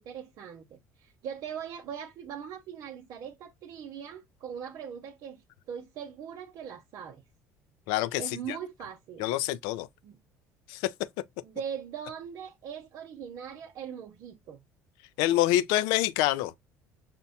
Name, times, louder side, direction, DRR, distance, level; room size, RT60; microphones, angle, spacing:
voice 1, 0.0-7.2 8.2-9.2 10.0-10.2 11.4-14.6, right 8 dB, 60° right, 0.6 m, -41 dB
voice 2, 7.9-8.6 9.2-9.9 10.7-10.9 15.2-16.5, left 14 dB, 75° left, 0.4 m, -26 dB
5.6 x 2.1 x 2.7 m
supercardioid pair, 80°, 7 cm